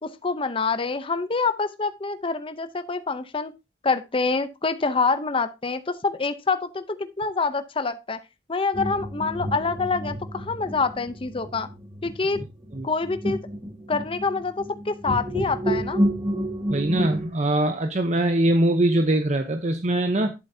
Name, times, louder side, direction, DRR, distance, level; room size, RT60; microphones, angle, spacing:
voice 1, 0.0-3.5 3.8-8.2 8.5-11.7 12.0-12.4 12.8-13.4 13.9-16.0, left 4 dB, 30° left, 11 dB, 0.7 m, -26 dB
sound 1, 8.7-17.3, equal, 15° right, 2.1 m, -30 dB
voice 2, 16.7-20.3, right 1 dB, 40° right, 7 dB, 0.8 m, -22 dB
11.5 x 7.6 x 2.8 m, 0.24 s
head